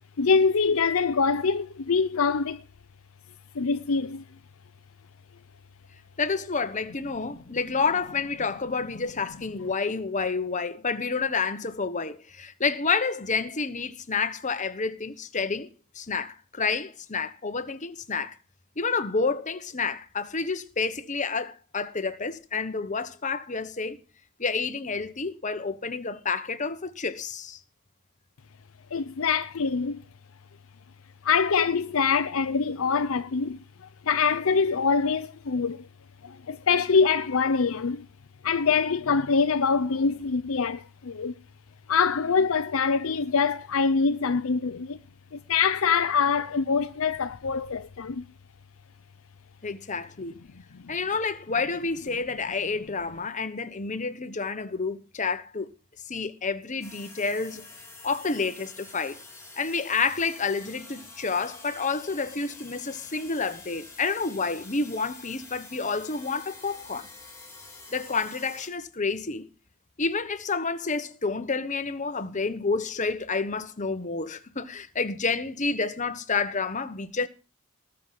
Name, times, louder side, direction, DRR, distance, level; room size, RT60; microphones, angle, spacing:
voice 1, 0.2-2.6 3.5-4.2 28.9-30.0 31.2-35.9 36.2-38.1 38.4-41.3 41.9-45.0 45.3-48.2 50.7-50.8, left 5 dB, 65° left, 0.6 m, -24 dB
voice 2, 6.2-15.7 15.9-18.4 18.8-24.0 24.4-27.6 49.6-50.4 50.9-55.7 56.1-57.7 58.0-59.2 59.6-67.1 67.9-69.5 70.0-77.3, left 4 dB, 35° left, 1.1 m, -29 dB
sound 1, 56.8-68.7, left 3 dB, 15° left, 3.5 m, -47 dB
19.5 x 6.6 x 5.7 m
head